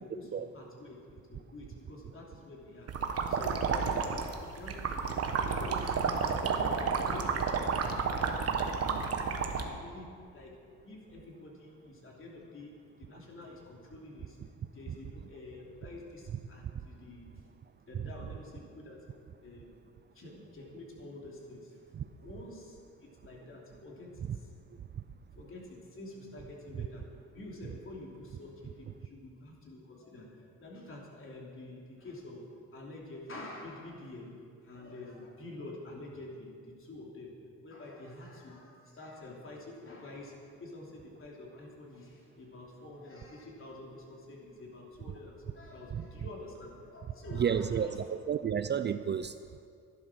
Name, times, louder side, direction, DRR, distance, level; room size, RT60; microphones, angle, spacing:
voice 1, 0.0-8.8 9.5-10.5 10.8-12.7 13.0-14.4 14.7-17.4 17.9-19.1 19.4-19.7 20.1-21.8 22.2-24.6 25.3-27.0 27.3-32.4 32.7-37.3 37.6-40.3 40.6-48.0, left 2 dB, 45° left, -2 dB, 3.2 m, -48 dB
sound 1, 2.9-9.6, right 5 dB, 55° right, 1.3 m, -31 dB
voice 2, 47.4-49.3, right 8 dB, 35° right, 12 dB, 0.4 m, -31 dB
11.5 x 11.0 x 6.2 m, 2.3 s
cardioid pair, 90°, 30 cm